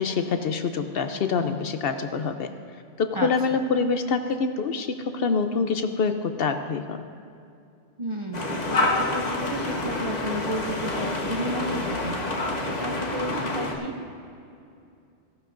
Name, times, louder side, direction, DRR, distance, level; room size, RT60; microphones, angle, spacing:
voice 1, 0.0-2.5 3.0-7.0, left 5 dB, 60° left, 8 dB, 0.8 m, -26 dB
voice 2, 3.1-3.6 8.0-13.9, right 1 dB, 35° right, 2 dB, 0.6 m, -33 dB
sound 1, 8.3-13.7, left 2 dB, 40° left, 1.3 m, -28 dB
16.5 x 12.0 x 2.6 m, 2.5 s
omnidirectional pair, 1.2 m